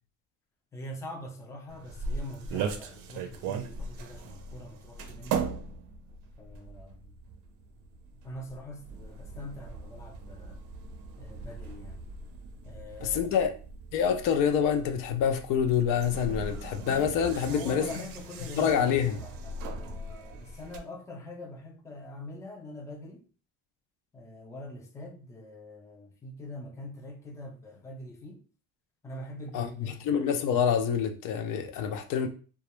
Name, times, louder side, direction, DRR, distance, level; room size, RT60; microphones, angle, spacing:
voice 1, 0.7-5.5 6.4-7.1 8.2-10.6 11.2-12.0 12.6-13.4 17.2-18.8 19.1-23.3 24.1-28.4 29.0-30.1, left 1 dB, 10° left, 0.4 m, -44 dB
sound 1, 1.7-20.8, right 5 dB, 80° right, 0.5 m, -39 dB
voice 2, 13.0-13.5 13.9-17.8 18.6-19.2 29.5-32.3, left 8 dB, 70° left, 0.5 m, -26 dB
2.2 x 2.0 x 3.0 m
cardioid pair, 120°, 33 cm